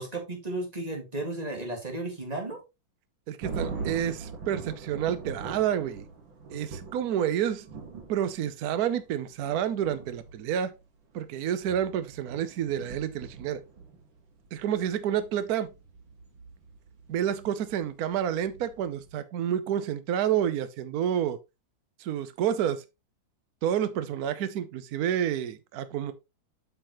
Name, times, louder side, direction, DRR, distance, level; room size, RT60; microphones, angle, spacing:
voice 1, 0.0-2.6, right 2 dB, 20° right, 2.0 m, -34 dB
voice 2, 3.3-6.0 6.5-7.6 8.1-10.7 11.1-13.6 14.5-15.7 17.1-21.4 22.0-22.8 23.6-26.1, right 10 dB, 60° right, 1.1 m, -29 dB
sound 1, 3.4-19.1, right 4 dB, 90° right, 2.3 m, -42 dB
8.5 x 5.7 x 3.0 m
omnidirectional pair, 2.0 m